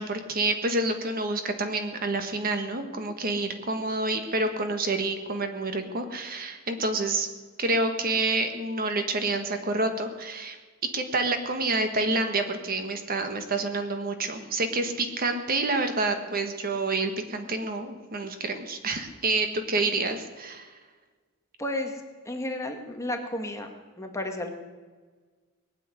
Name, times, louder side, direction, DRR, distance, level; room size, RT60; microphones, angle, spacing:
voice 1, 0.0-7.3 7.6-10.6 10.9-20.7, right 2 dB, 40° right, 7 dB, 1.5 m, -28 dB
voice 2, 21.6-21.9 22.2-23.7 24.0-24.5, left 1 dB, 15° left, 3 dB, 1.6 m, -32 dB
20.0 x 7.5 x 9.8 m, 1.4 s
head